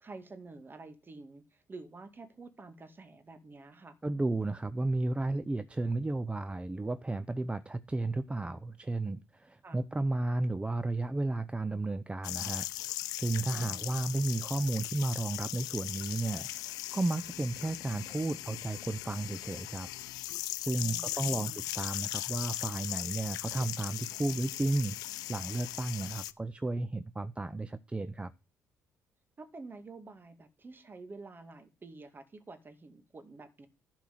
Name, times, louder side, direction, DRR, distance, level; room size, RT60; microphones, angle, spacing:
voice 1, 0.0-4.0 9.6-9.8 13.5-14.0 20.8-21.6 29.4-33.7, right 3 dB, 35° right, 2.1 m, -49 dB
voice 2, 4.0-12.9 13.1-19.9 20.4-25.0 25.3-28.3, right 2 dB, 20° right, 0.7 m, -33 dB
sound 1, 12.2-26.3, left 15 dB, 80° left, 0.6 m, -38 dB
11.5 x 4.6 x 7.6 m
supercardioid pair, 65°, 6 cm